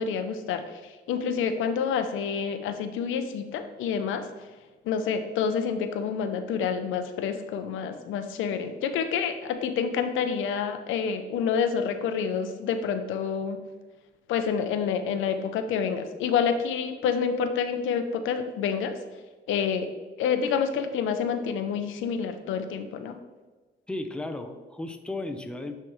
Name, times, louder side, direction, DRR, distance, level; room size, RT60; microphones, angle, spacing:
voice 1, 0.0-4.5 4.8-13.6 14.3-19.0 19.5-19.9 20.2-23.2, left 6 dB, 85° left, 8 dB, 0.6 m, -28 dB
voice 2, 23.9-25.7, left 2 dB, 5° left, 7 dB, 0.5 m, -34 dB
9.4 x 3.4 x 3.1 m, 1.3 s
cardioid pair, 90°, 20 cm